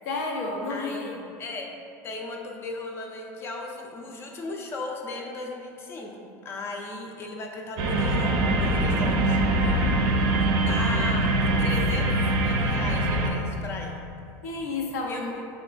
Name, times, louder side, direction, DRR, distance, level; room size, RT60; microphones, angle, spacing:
voice 1, 0.1-1.2 9.6-9.8 11.4-11.7 14.4-15.4, left 3 dB, 90° left, 0 dB, 0.5 m, -32 dB
voice 2, 0.7-1.7 2.0-6.1 6.4-9.4 10.3-11.3 11.6-13.9 15.1-15.2, left 2 dB, 35° left, 1 dB, 0.4 m, -36 dB
sound 1, 7.8-13.3, right 1 dB, 60° right, 0.4 m, -23 dB
3.7 x 2.2 x 3.9 m, 2.4 s
supercardioid pair, 125°, 8 cm